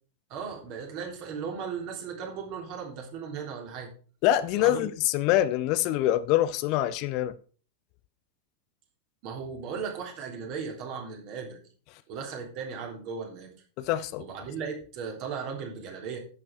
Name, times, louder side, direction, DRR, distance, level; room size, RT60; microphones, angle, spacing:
voice 1, 0.3-3.9 4.5-4.9 9.2-11.6 12.1-13.5 14.2-16.2, right 6 dB, 45° right, 3.3 m, -36 dB
voice 2, 4.2-7.3 13.8-14.2, left 13 dB, 45° left, 0.6 m, -25 dB
11.0 x 7.6 x 4.6 m
figure-of-eight pair, 90°, 0 cm